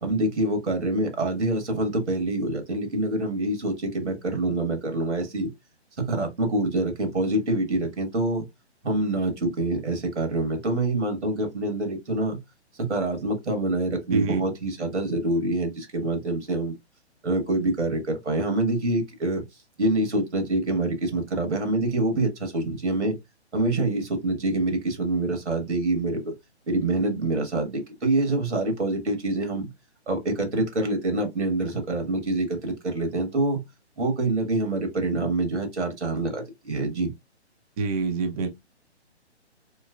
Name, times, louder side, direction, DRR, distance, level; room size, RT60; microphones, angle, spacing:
voice 1, 0.0-5.5 6.0-8.5 8.8-12.4 12.8-16.7 17.2-19.4 19.8-23.2 23.5-26.3 26.7-29.7 30.1-33.6 34.0-37.1, right 2 dB, 85° right, 1.5 m, -26 dB
voice 2, 14.1-14.4 37.8-38.5, right 4 dB, 35° right, 0.5 m, -25 dB
3.1 x 3.0 x 2.3 m
hypercardioid pair, 140°, 34 cm